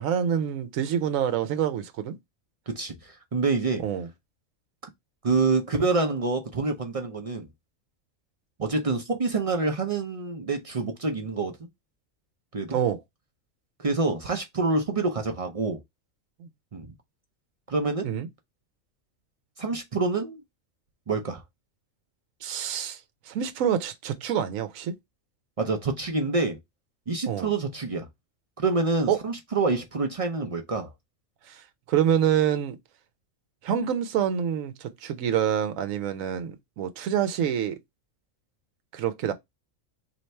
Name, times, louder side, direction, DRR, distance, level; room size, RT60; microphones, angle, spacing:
voice 1, 0.0-2.2 3.8-4.1 12.7-13.0 16.4-16.5 18.0-18.3 22.4-23.0 23.3-24.9 27.3-27.5 29.1-29.2 31.5-32.8 33.6-37.8 38.9-39.3, right 9 dB, 90° right, 1.0 m, -26 dB
voice 2, 2.7-3.8 5.2-7.5 8.6-11.7 12.5-12.8 13.8-15.8 16.7-16.9 17.7-18.1 19.6-20.4 21.1-21.4 25.6-26.6 27.1-28.1 28.6-30.9, right 3 dB, 50° right, 0.4 m, -27 dB
3.2 x 2.7 x 4.2 m
omnidirectional pair, 1.4 m